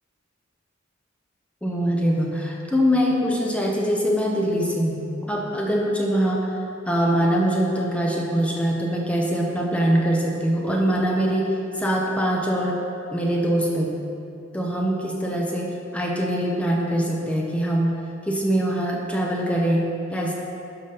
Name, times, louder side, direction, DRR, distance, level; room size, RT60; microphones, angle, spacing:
voice 1, 1.6-6.6 6.9-12.8 13.1-14.0 14.5-18.0 18.2-20.3, equal, 5° left, -2 dB, 0.9 m, -23 dB
12.0 x 5.2 x 4.1 m, 2.6 s
head